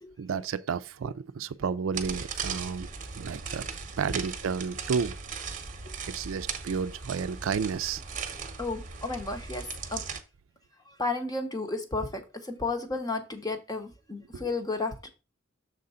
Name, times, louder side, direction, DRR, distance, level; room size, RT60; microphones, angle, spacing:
voice 1, 0.2-3.7 4.0-5.2 6.0-8.0 14.3-14.5, right 6 dB, 70° right, 0.4 m, -32 dB
sound 1, 1.9-10.2, right 6 dB, 40° right, 0.9 m, -38 dB
voice 2, 8.6-10.0 11.0-12.2 12.5-15.1, left 3 dB, 20° left, 0.9 m, -32 dB
6.5 x 3.8 x 5.5 m
head